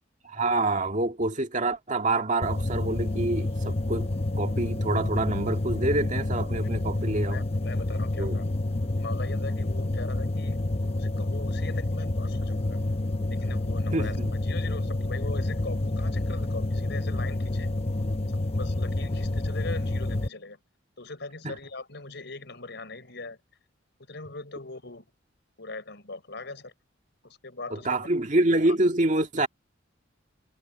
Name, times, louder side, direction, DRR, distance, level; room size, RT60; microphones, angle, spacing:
voice 1, 0.2-4.1 4.4-7.4 8.2-8.4 13.5-13.6 13.9-14.3 21.4-21.6 27.7-29.5, right 2 dB, 40° right, 1.9 m, -27 dB
sound 1, 2.4-20.3, left 2 dB, 30° left, 0.7 m, -28 dB
voice 2, 7.3-8.4 9.0-10.6 10.9-12.8 13.3-17.7 18.5-20.6 21.0-23.4 24.1-25.1 25.6-26.7 27.2-27.9 28.7-28.8, left 3 dB, 60° left, 6.2 m, -40 dB
head